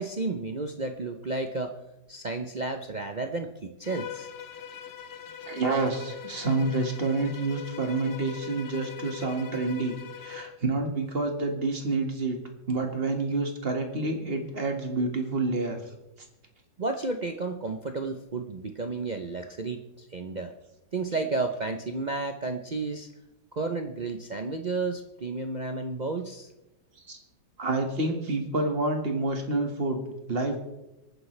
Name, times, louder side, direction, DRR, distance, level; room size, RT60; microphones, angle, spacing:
voice 1, 0.0-1.8 2.1-4.3 16.8-20.5 20.9-23.1 23.5-26.5, right 3 dB, 65° right, 5 dB, 0.4 m, -32 dB
Bowed string instrument, 3.8-10.6, left 9 dB, 55° left, 0.7 m, -42 dB
voice 2, 5.5-12.4 12.7-15.8 27.1-27.2 27.6-30.6, right 3 dB, 35° right, 4 dB, 1.9 m, -28 dB
25.0 x 9.7 x 3.3 m, 0.96 s
omnidirectional pair, 1.9 m